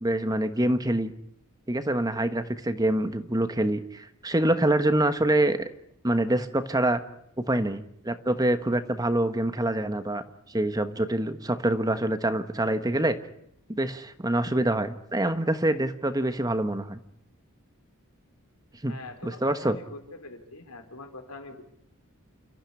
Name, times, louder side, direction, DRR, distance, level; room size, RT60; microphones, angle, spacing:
voice 1, 0.0-1.1 1.7-5.6 6.0-7.0 7.4-10.2 10.5-13.2 13.7-17.0 18.8-19.0 19.2-19.8, right 1 dB, 15° right, 10 dB, 1.3 m, -25 dB
voice 2, 18.9-21.6, left 2 dB, 85° left, 6 dB, 4.4 m, -43 dB
29.5 x 14.5 x 10.0 m, 0.72 s
head